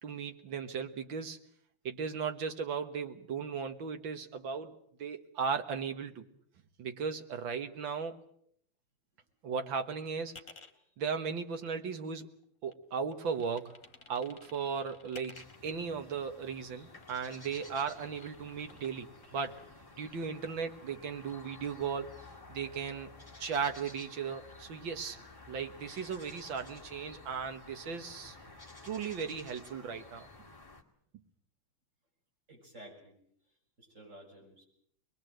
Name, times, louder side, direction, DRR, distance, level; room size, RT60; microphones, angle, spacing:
voice 1, 0.0-1.4 1.9-4.7 5.0-6.3 6.8-8.2 9.4-10.4 11.0-12.3 12.6-13.7 14.1-19.6 20.0-22.1 22.5-23.1 23.4-25.2 25.5-28.4 28.8-30.3, right 6 dB, 75° right, 7 dB, 2.3 m, -36 dB
sound 1, 10.3-10.7 11.3-12.4 12.7-15.7 16.5-19.7, left 4 dB, 40° left, 2.2 m, -56 dB
sound 2, 15.3-30.8, left 2 dB, 10° left, 2.2 m, -53 dB
voice 2, 32.5-33.1 33.8-34.6, right 1 dB, 35° right, 0 dB, 7.2 m, -52 dB
23.5 x 22.0 x 7.9 m, 0.67 s
omnidirectional pair, 2.2 m